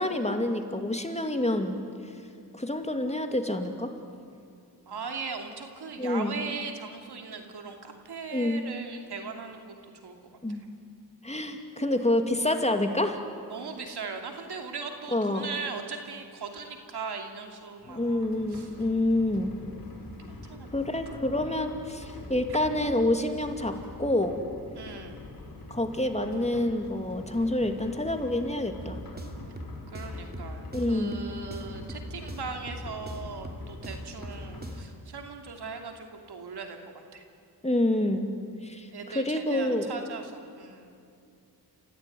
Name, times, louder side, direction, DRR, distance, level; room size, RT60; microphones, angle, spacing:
voice 1, 0.0-1.8 2.5-3.9 6.0-6.4 8.3-8.6 10.4-10.6 11.2-13.2 15.1-15.5 17.9-19.6 20.7-24.4 25.7-29.0 30.7-31.2 37.6-38.3 38.6-39.9, left 1 dB, 15° left, 5 dB, 2.5 m, -27 dB
voice 2, 4.9-9.7 10.0-10.2 10.5-10.6 13.5-18.7 20.3-20.7 21.5-21.6 24.7-25.3 29.9-36.8 37.1-37.3 38.9-41.0, right 5 dB, 75° right, 4 dB, 2.8 m, -39 dB
sound 1, 17.8-34.8, left 2 dB, 55° left, 4.7 m, -45 dB
sound 2, 28.8-35.0, equal, 25° right, 3.2 m, -41 dB
29.0 x 15.0 x 9.5 m, 2.5 s
cardioid pair, 60°, 40 cm